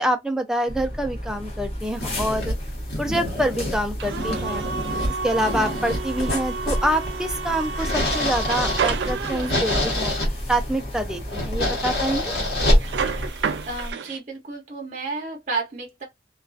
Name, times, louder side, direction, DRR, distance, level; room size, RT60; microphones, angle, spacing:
voice 1, 0.0-2.5 3.0-4.6 5.2-10.1 10.5-12.3, right 1 dB, 5° right, 0.3 m, -26 dB
sound 1, 0.7-13.3, equal, 35° left, 0.8 m, -34 dB
sound 2, 1.8-13.9, left 1 dB, 60° left, 1.1 m, -27 dB
sound 3, 4.0-10.1 12.8-14.2, right 5 dB, 80° right, 0.4 m, -30 dB
voice 2, 13.6-16.0, right 3 dB, 45° right, 0.6 m, -31 dB
2.3 x 2.3 x 2.3 m
head